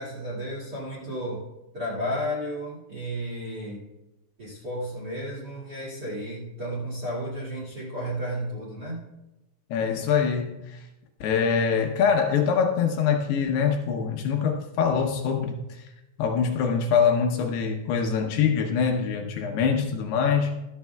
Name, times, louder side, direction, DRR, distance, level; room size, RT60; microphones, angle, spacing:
voice 1, 0.0-1.4 1.7-3.8 4.4-9.0, equal, 35° right, -5 dB, 1.8 m, -33 dB
voice 2, 9.7-10.8 11.2-15.6 16.2-20.6, left 6 dB, 75° left, 3 dB, 2.6 m, -24 dB
15.5 x 13.0 x 2.3 m, 0.98 s
omnidirectional pair, 5.1 m